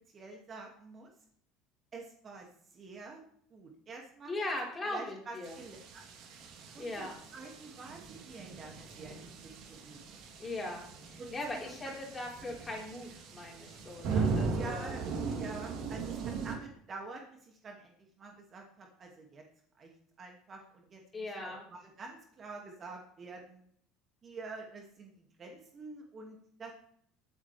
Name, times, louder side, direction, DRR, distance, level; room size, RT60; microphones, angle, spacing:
voice 1, 0.1-1.1 1.9-3.2 3.5-4.3 4.9-6.0 6.7-10.2 11.2-11.9 14.5-15.0 15.3-19.4 19.8-19.9 20.2-23.6 24.2-26.7, right 3 dB, 30° right, 1 dB, 2.3 m, -48 dB
voice 2, 4.2-5.6 6.8-7.1 10.4-14.9 21.1-21.6, left 2 dB, 20° left, -2 dB, 4.5 m, -39 dB
sound 1, 5.4-16.6, right 4 dB, 60° right, 3.2 m, -38 dB
22.0 x 8.9 x 3.5 m, 0.64 s
supercardioid pair, 120°, 0 cm